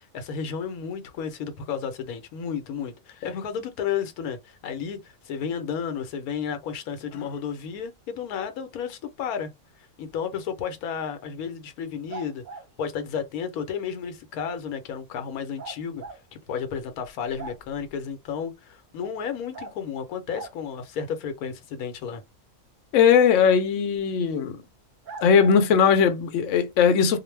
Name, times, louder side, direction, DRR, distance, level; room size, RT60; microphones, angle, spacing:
voice 1, 0.0-9.5 10.0-12.4 12.8-16.0 16.3-22.2, left 7 dB, 85° left, 1.1 m, -32 dB
sound 1, 12.1-12.7 15.6-16.2 16.7-16.8 17.0-17.9 19.5-19.8 20.3-20.6 23.9-24.0 25.0-25.6, right 4 dB, 90° right, 0.4 m, -40 dB
voice 2, 22.9-24.6 25.2-27.2, left 7 dB, 70° left, 0.8 m, -19 dB
2.5 x 2.1 x 3.1 m
omnidirectional pair, 1.5 m